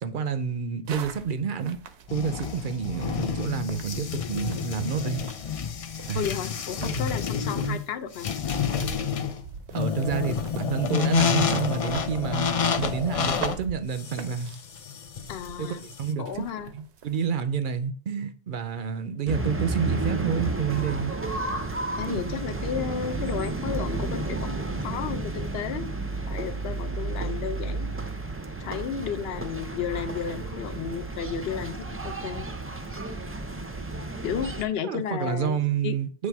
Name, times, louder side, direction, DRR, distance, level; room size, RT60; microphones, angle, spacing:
voice 1, 0.0-1.8 2.1-5.2 6.1-6.2 6.8-7.2 7.4-7.8 9.7-12.5 12.8-14.5 15.6-16.5 16.7-21.1 22.1-22.4 34.8-36.3, right 7 dB, 55° right, 0.7 m, -29 dB
sound 1, 0.9-17.4, right 7 dB, 80° right, 1.0 m, -43 dB
sound 2, 2.1-16.1, left 7 dB, 50° left, 0.4 m, -29 dB
voice 2, 6.1-8.3 15.3-15.8 16.2-16.7 22.0-24.5 24.8-25.9 26.3-27.9 28.6-32.5 34.2-35.6 35.8-36.0, left 8 dB, 70° left, 0.8 m, -33 dB
sound 3, 19.3-34.6, right 2 dB, 20° right, 0.4 m, -32 dB
7.5 x 3.3 x 4.6 m
omnidirectional pair, 1.1 m